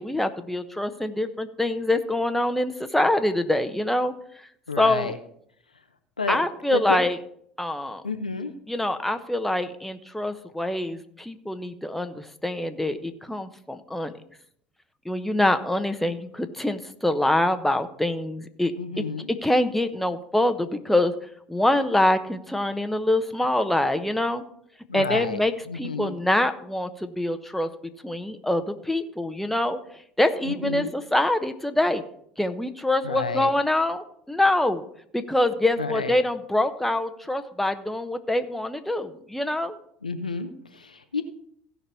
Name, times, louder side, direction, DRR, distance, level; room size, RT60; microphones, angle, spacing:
voice 1, 0.0-4.1 4.8-5.2 6.3-7.2 7.6-8.0 8.7-14.1 15.0-18.7 19.0-21.1 21.5-24.4 24.9-27.7 28.0-29.8 30.2-32.0 32.4-34.8 35.1-39.8, left 1 dB, 5° left, 7 dB, 1.0 m, -25 dB
voice 2, 4.7-5.2 6.2-6.4 6.7-7.0 8.0-8.5 18.8-19.3 24.9-25.4 25.7-26.2 30.4-30.9 33.0-33.5 35.8-36.2 40.0-41.2, left 4 dB, 90° left, 8 dB, 0.7 m, -30 dB
16.0 x 5.5 x 4.5 m, 0.67 s
figure-of-eight pair, 65°, 4 cm